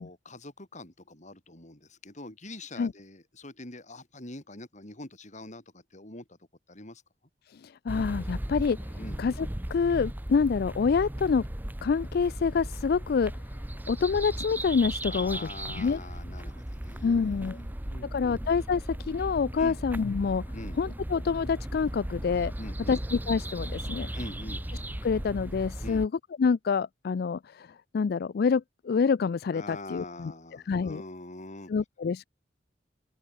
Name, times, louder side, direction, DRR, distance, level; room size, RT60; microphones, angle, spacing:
voice 1, 0.0-6.2 6.7-7.0 9.0-9.2 15.1-18.4 19.6-19.8 20.5-20.8 22.6-23.0 24.1-24.6 25.8-26.0 29.5-31.7, left 2 dB, 45° left, 6.6 m, -44 dB
voice 2, 7.6-8.8 9.2-11.5 11.8-13.3 13.9-15.5 15.7-16.0 17.0-17.6 18.1-20.4 20.8-22.5 22.9-24.1 25.0-26.1 26.4-27.7 27.9-31.0 31.7-32.3, left 5 dB, 60° left, 0.4 m, -27 dB
sound 1, 7.9-26.1, right 1 dB, 10° right, 0.8 m, -37 dB
open air
head